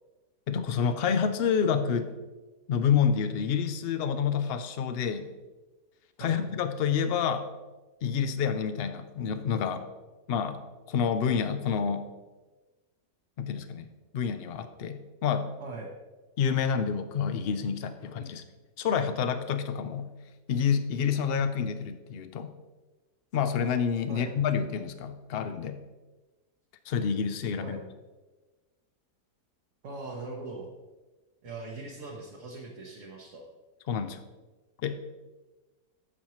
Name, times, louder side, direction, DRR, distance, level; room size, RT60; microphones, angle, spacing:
voice 1, 0.5-2.1 2.7-5.3 6.2-7.4 8.0-9.9 10.3-10.6 10.9-12.1 13.4-15.5 16.4-18.4 18.8-20.1 20.5-22.5 23.3-25.8 26.9-27.8 33.9-34.2 34.8-34.9, left 7 dB, 65° left, 9 dB, 0.6 m, -28 dB
voice 2, 15.6-15.9 24.1-24.3 27.6-27.8 29.8-30.7 31.4-33.5, right 3 dB, 55° right, -1 dB, 1.2 m, -40 dB
10.5 x 7.2 x 3.1 m, 1.2 s
omnidirectional pair, 1.7 m